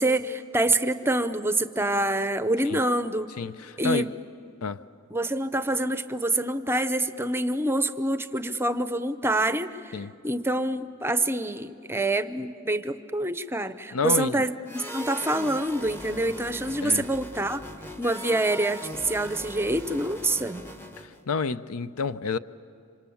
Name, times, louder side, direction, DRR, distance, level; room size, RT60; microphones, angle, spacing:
voice 1, 0.0-3.3 3.8-4.1 5.1-17.6 18.0-20.6, right 1 dB, 10° right, 0.6 m, -26 dB
voice 2, 3.4-4.1 4.6-4.8 9.9-10.1 13.9-14.4 16.8-17.0 21.0-22.4, left 4 dB, 80° left, 0.6 m, -29 dB
sound 1, 14.7-21.2, equal, 10° left, 1.0 m, -40 dB
27.0 x 26.0 x 7.2 m
head